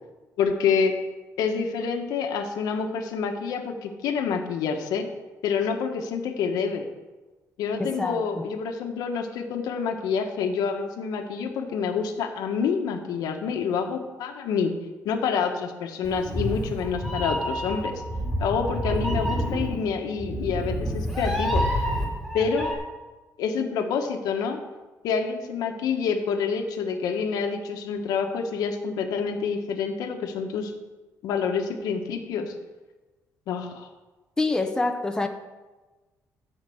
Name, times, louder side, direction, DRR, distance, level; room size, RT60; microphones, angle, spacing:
voice 1, 0.4-0.9 1.4-5.1 5.4-6.9 7.6-14.7 15.0-17.9 18.4-21.6 22.3-22.7 23.4-24.6 25.0-30.7 31.2-32.5 33.5-33.9, left 6 dB, 90° left, 4 dB, 1.5 m, -27 dB
voice 2, 7.8-8.5 34.4-35.3, left 3 dB, 10° left, 5 dB, 0.9 m, -26 dB
Meow, 16.0-22.7, equal, 5° right, 3.1 m, -28 dB
13.5 x 5.2 x 7.8 m, 1.2 s
cardioid pair, 140°, 6 cm